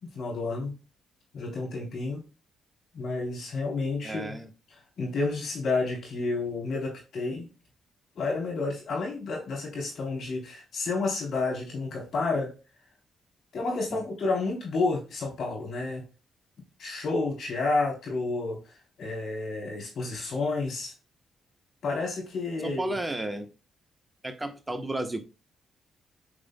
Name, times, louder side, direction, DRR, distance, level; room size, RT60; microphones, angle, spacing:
voice 1, 0.1-0.8 1.3-2.2 2.9-4.4 5.0-7.5 8.2-12.5 13.5-16.0 16.8-18.7 19.0-20.9 21.8-23.0, left 3 dB, 65° left, -1 dB, 3.5 m, -30 dB
voice 2, 4.0-4.5 13.9-14.0 22.6-23.5 24.2-25.2, right 2 dB, 20° right, 9 dB, 1.0 m, -33 dB
8.5 x 5.1 x 2.2 m, 0.31 s
hypercardioid pair, 40°, 0 cm